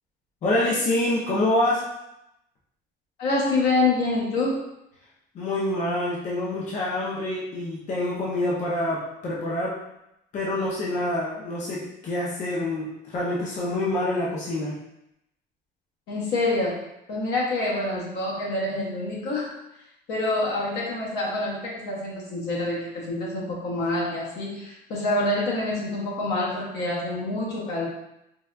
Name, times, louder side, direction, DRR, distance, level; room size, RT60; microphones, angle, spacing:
voice 1, 0.4-1.8 5.3-9.7 10.3-14.7, left 1 dB, 45° left, -5 dB, 0.6 m, -26 dB
voice 2, 3.2-4.7 16.1-16.8 17.1-19.5 20.1-27.9, left 2 dB, 75° left, -4 dB, 1.1 m, -26 dB
4.6 x 2.4 x 2.2 m, 0.85 s
cardioid pair, 145°, 18 cm